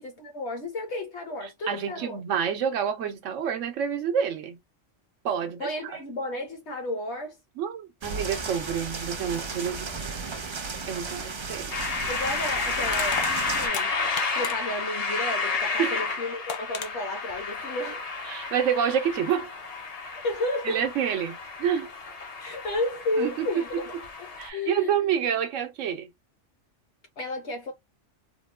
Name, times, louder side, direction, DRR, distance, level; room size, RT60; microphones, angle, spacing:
voice 1, 0.0-2.2 5.6-7.4 12.1-18.0 20.2-20.8 22.4-23.8 24.2-25.1 27.2-27.7, left 1 dB, 65° left, 1.3 m, -32 dB
voice 2, 1.7-4.6 5.2-6.0 7.6-10.0 10.9-11.7 15.8-16.0 18.3-19.5 20.6-21.9 23.2-23.5 24.4-26.1, right 8 dB, 90° right, 1.1 m, -28 dB
sound 1, 8.0-13.7, right 4 dB, 45° right, 0.3 m, -35 dB
Crushing, 11.5-11.7 12.9-14.8 16.0-16.1 16.5-16.9, left 8 dB, 90° left, 1.0 m, -35 dB
sound 2, 11.7-24.5, left 4 dB, 45° left, 0.5 m, -31 dB
3.5 x 2.2 x 2.2 m
omnidirectional pair, 1.3 m